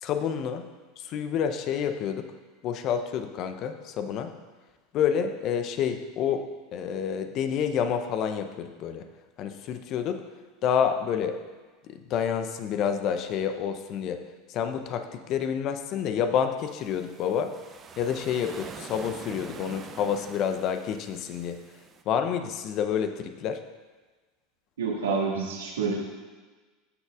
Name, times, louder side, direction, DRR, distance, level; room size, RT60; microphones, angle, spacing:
voice 1, 0.0-0.7 1.0-2.3 2.6-4.3 4.9-9.1 9.4-10.2 10.6-11.4 11.8-14.2 14.5-17.5 18.0-21.6 22.1-23.6, left 8 dB, 50° left, 8 dB, 0.7 m, -28 dB
sound 1, 16.6-22.0, right 6 dB, 35° right, 0.7 m, -45 dB
voice 2, 24.8-26.0, right 4 dB, 75° right, -2 dB, 1.7 m, -28 dB
14.5 x 6.5 x 2.4 m, 1.3 s
figure-of-eight pair, 75°, 0 cm